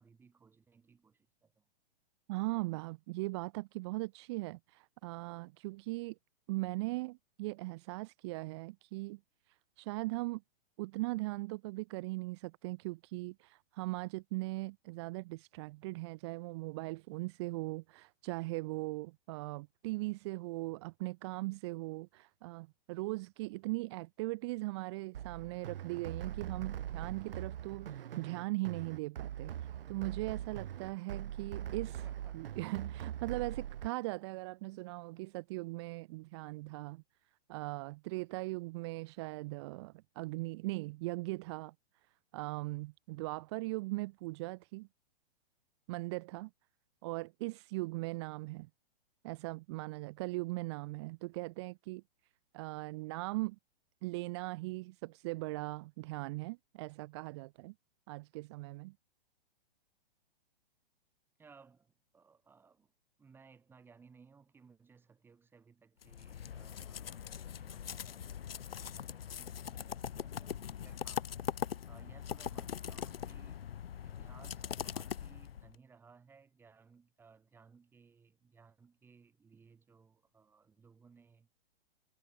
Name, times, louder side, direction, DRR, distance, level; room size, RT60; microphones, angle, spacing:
voice 1, 0.0-1.7 31.9-32.5 61.4-62.9 63.2-71.3 71.9-73.6 74.0-81.5, right 5 dB, 5° right, 5.5 m, -62 dB
voice 2, 2.3-6.2 6.5-9.2 9.5-10.4 10.8-32.0 32.3-37.0 37.5-41.7 42.3-44.9 45.9-46.5 47.0-48.7 49.2-52.0 52.5-53.6 54.0-57.7 58.1-58.9, right 22 dB, 25° right, 1.7 m, -39 dB
sound 1, 25.1-33.9, right 10 dB, 65° right, 1.0 m, -42 dB
sound 2, 66.0-75.8, left 9 dB, 70° left, 3.7 m, -42 dB
hypercardioid pair, 170°, 31 cm